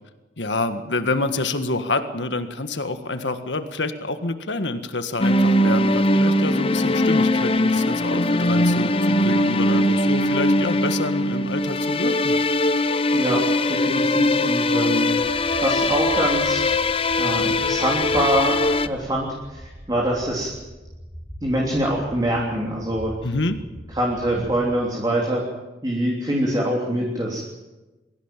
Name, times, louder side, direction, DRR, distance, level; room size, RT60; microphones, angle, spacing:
voice 1, 0.4-12.4 23.2-23.6, left 2 dB, 80° left, 8 dB, 1.7 m, -27 dB
sound 1, 5.2-18.9, left 1 dB, 30° left, 0.8 m, -21 dB
voice 2, 13.1-13.4 13.7-16.6 17.2-20.5 21.4-23.1 23.9-25.4 25.8-27.4, right 1 dB, 20° right, -2 dB, 3.3 m, -24 dB
sound 2, 15.1-24.9, equal, ahead, 4.4 m, -42 dB
23.0 x 15.5 x 9.1 m, 1.1 s
head